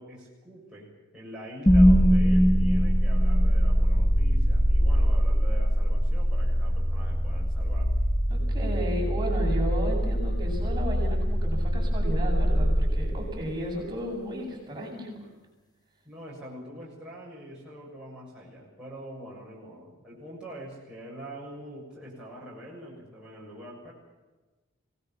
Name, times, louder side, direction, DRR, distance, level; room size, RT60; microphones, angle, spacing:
voice 1, 0.0-7.9 16.1-23.9, right 1 dB, 5° right, -7 dB, 7.1 m, -44 dB
sound 1, 1.7-13.8, equal, 20° left, 1.9 m, -23 dB
voice 2, 8.3-15.1, equal, 20° right, -2 dB, 7.9 m, -33 dB
26.0 x 19.0 x 7.4 m, 1.2 s
head